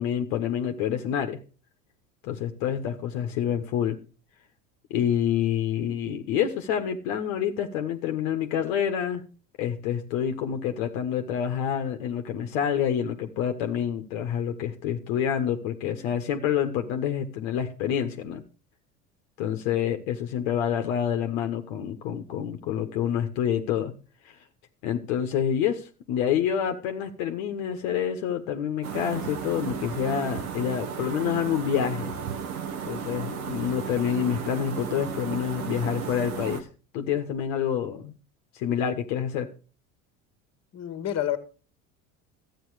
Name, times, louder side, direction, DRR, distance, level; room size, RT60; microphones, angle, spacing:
voice 1, 0.0-1.4 2.2-4.0 4.9-9.2 9.6-18.4 19.4-23.9 24.8-32.1 32.8-36.7 36.9-38.1 38.5-39.5, left 9 dB, 65° left, 1.5 m, -27 dB
voice 2, 3.1-3.5 40.7-41.4, left 11 dB, 35° left, 1.8 m, -30 dB
sound 1, 28.8-36.6, right 7 dB, 80° right, 1.6 m, -34 dB
13.0 x 8.8 x 4.9 m
hypercardioid pair, 75°, 43 cm